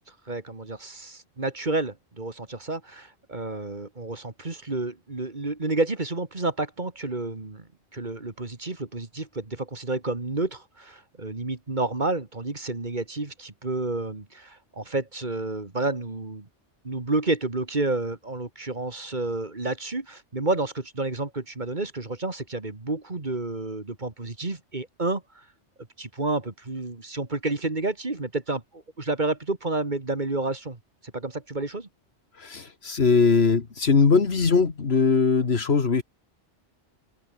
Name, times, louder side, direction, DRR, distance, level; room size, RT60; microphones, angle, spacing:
voice 1, 0.3-7.7 7.9-16.5 16.8-25.4 26.0-31.9, right 2 dB, 40° right, 2.4 m, -30 dB
voice 2, 32.4-36.0, left 4 dB, 60° left, 1.9 m, -21 dB
omnidirectional pair, 1.2 m